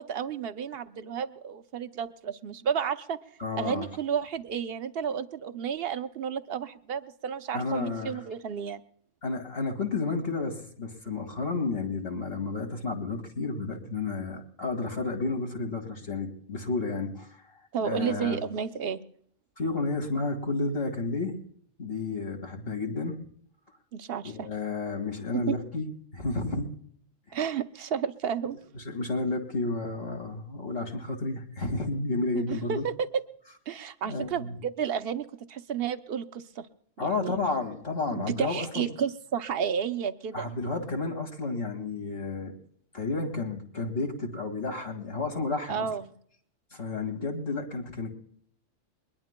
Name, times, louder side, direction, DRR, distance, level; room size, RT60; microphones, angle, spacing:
voice 1, 0.0-3.2 3.6-8.8 17.7-19.0 23.9-24.5 25.3-25.6 27.3-28.6 32.3-33.2 33.7-36.7 37.0-37.4 38.1-40.5 45.7-46.1, right 7 dB, 55° right, 10 dB, 0.9 m, -32 dB
voice 2, 3.4-3.9 7.5-8.2 9.2-18.4 19.6-21.4 21.8-23.2 24.2-26.8 27.3-27.4 28.7-32.9 34.0-34.5 37.0-38.9 40.3-42.6 42.9-45.9 46.7-48.1, left 3 dB, 45° left, 3 dB, 2.3 m, -31 dB
22.5 x 20.0 x 2.2 m, 0.62 s
omnidirectional pair, 1.3 m